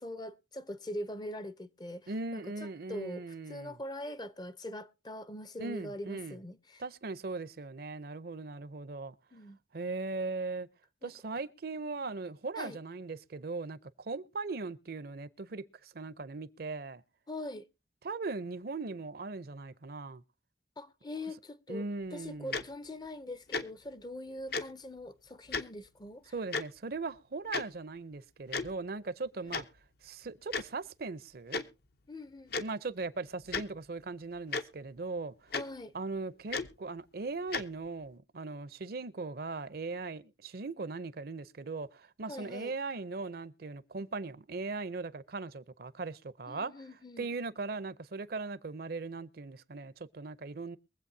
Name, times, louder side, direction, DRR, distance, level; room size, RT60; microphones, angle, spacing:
voice 1, 0.0-6.8 9.3-9.6 11.0-11.1 12.6-12.8 17.3-17.7 20.8-21.8 22.1-26.3 29.4-29.6 32.1-32.8 35.5-35.9 42.3-42.7 46.5-47.3, left 1 dB, 25° left, 0.6 m, -43 dB
voice 2, 2.1-3.8 5.6-6.4 6.8-9.1 9.7-10.7 11.0-17.0 18.0-20.2 21.7-22.6 26.3-29.7 30.0-31.6 32.6-35.5 35.9-46.7 47.2-50.8, right 3 dB, 55° right, 0.6 m, -39 dB
Tick-tock, 22.5-22.6 23.5-23.6 24.5-24.6 25.5-25.6 26.5-26.6 27.5-27.6 28.5-28.7 29.5-29.6 30.5-30.6 31.5-31.6 32.5-32.6 33.5-33.6 34.5-34.6 35.5-35.6 36.5-36.7 37.5-37.6, left 4 dB, 55° left, 0.8 m, -33 dB
23.0 x 7.9 x 2.7 m
head